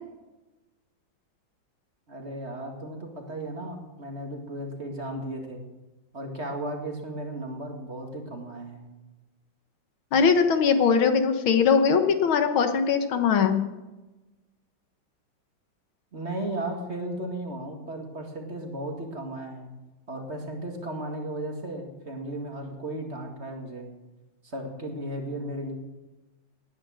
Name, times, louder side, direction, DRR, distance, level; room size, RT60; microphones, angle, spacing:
voice 1, 2.1-5.6 6.1-8.9 16.1-19.7 20.1-23.9 24.4-25.7, right 1 dB, 35° right, 3 dB, 2.2 m, -35 dB
voice 2, 10.1-13.6, left 6 dB, 80° left, 7 dB, 2.0 m, -21 dB
18.5 x 10.0 x 6.4 m, 1.1 s
omnidirectional pair, 2.2 m